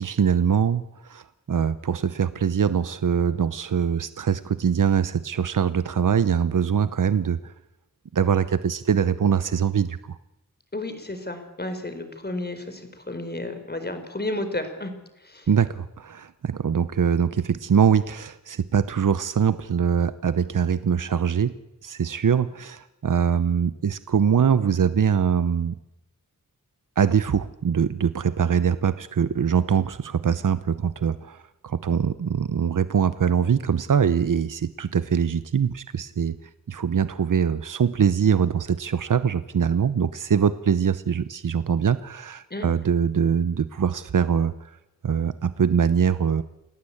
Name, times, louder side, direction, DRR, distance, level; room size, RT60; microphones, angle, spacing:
voice 1, 0.0-7.5 8.1-10.2 15.5-21.6 21.8-25.7 27.0-36.4 36.7-44.7 45.0-46.4, right 7 dB, 75° right, 14 dB, 0.8 m, -23 dB
voice 2, 10.7-14.9 15.2-15.5 42.5-42.7, left 2 dB, 30° left, 8 dB, 4.3 m, -32 dB
28.5 x 18.0 x 8.6 m, 0.95 s
wide cardioid pair, 90°, 31 cm